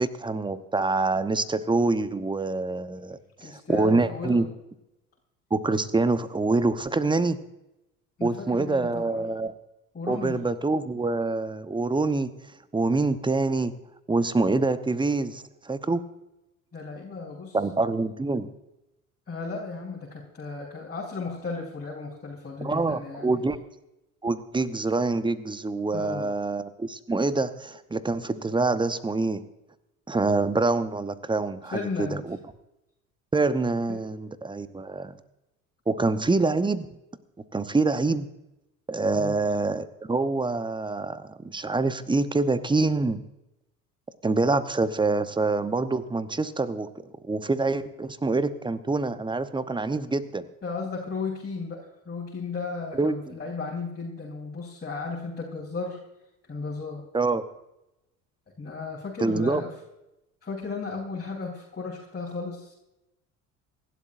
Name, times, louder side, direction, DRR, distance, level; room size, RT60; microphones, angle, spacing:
voice 1, 0.0-4.5 5.5-7.4 8.2-9.5 10.1-12.3 12.7-13.7 14.1-16.0 17.5-18.5 22.6-23.6 24.2-29.4 30.1-32.4 33.3-35.2 35.9-36.9 37.5-38.3 38.9-43.2 44.2-46.9 47.2-50.5 53.0-53.3 57.1-57.4 59.2-59.6, right 3 dB, 10° right, 13 dB, 0.9 m, -26 dB
voice 2, 3.4-4.4 8.2-9.2 9.9-10.4 16.7-17.6 19.3-23.4 25.9-26.3 31.7-32.2 33.9-34.0 39.1-39.4 50.6-56.0 56.5-57.0 58.6-59.7 60.4-62.7, left 4 dB, 20° left, -4 dB, 3.9 m, -35 dB
27.5 x 12.0 x 2.6 m, 0.92 s
figure-of-eight pair, 65°, 45 cm